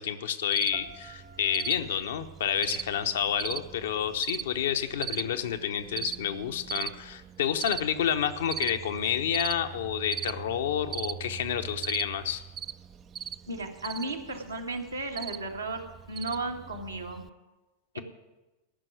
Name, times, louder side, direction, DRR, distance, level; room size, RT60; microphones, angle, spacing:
voice 1, 0.0-12.4, left 9 dB, 60° left, 7 dB, 0.9 m, -29 dB
Cricket, 0.5-17.3, right 8 dB, 25° right, 0.4 m, -40 dB
sound 1, 0.7-3.7, right 4 dB, 50° right, 1.1 m, -52 dB
voice 2, 13.5-17.2 17.9-18.0, right 2 dB, 80° right, 0 dB, 1.7 m, -35 dB
14.0 x 6.1 x 9.3 m, 1.1 s
figure-of-eight pair, 90°, 0 cm